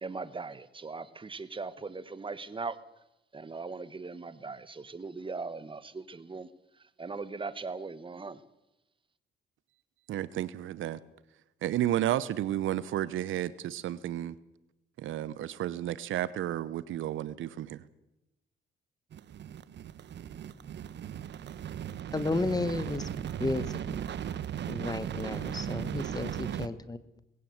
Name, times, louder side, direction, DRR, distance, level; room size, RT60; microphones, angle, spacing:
voice 1, 0.0-2.8 3.3-6.5 7.0-8.4, right 4 dB, 25° right, 15 dB, 1.4 m, -39 dB
voice 2, 10.1-11.0 11.6-14.3 15.0-17.8, right 12 dB, 80° right, 17 dB, 1.0 m, -32 dB
sound 1, 19.1-26.7, right 9 dB, 60° right, 1.2 m, -37 dB
voice 3, 22.1-24.0 24.7-27.0, left 2 dB, 20° left, 14 dB, 1.5 m, -33 dB
20.5 x 17.0 x 8.0 m, 0.93 s
cardioid pair, 90°, 20 cm